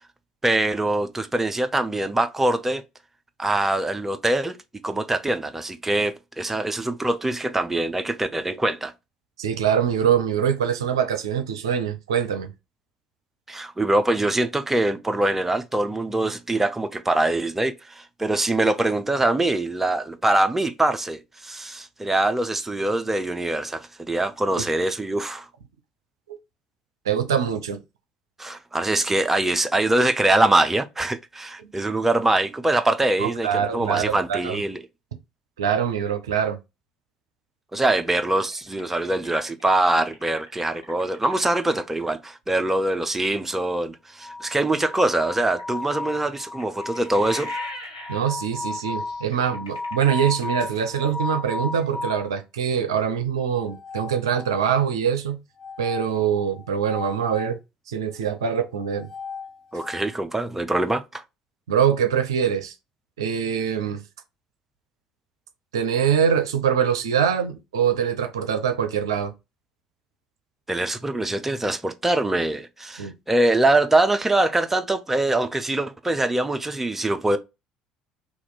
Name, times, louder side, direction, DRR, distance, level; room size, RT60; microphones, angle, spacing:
voice 1, 0.4-2.8 3.4-4.6 4.8-8.9 13.5-25.5 28.4-34.8 37.7-47.5 59.7-61.2 70.7-77.4, right 2 dB, 10° right, 0.5 m, -23 dB
voice 2, 9.4-12.5 24.6-24.7 27.0-27.8 31.6-31.7 33.2-34.6 35.6-36.6 48.1-55.4 55.8-57.6 57.9-59.1 61.7-62.7 63.2-64.0 65.7-69.3 73.0-73.1, right 8 dB, 75° right, 0.4 m, -24 dB
sound 1, 38.0-42.0 44.9-51.0, left 1 dB, 90° left, 1.0 m, -43 dB
sound 2, 44.2-52.3 53.5-54.8 55.6-57.5 58.7-60.1, left 3 dB, 25° left, 1.4 m, -35 dB
2.9 x 2.4 x 3.8 m
figure-of-eight pair, 60°, 3 cm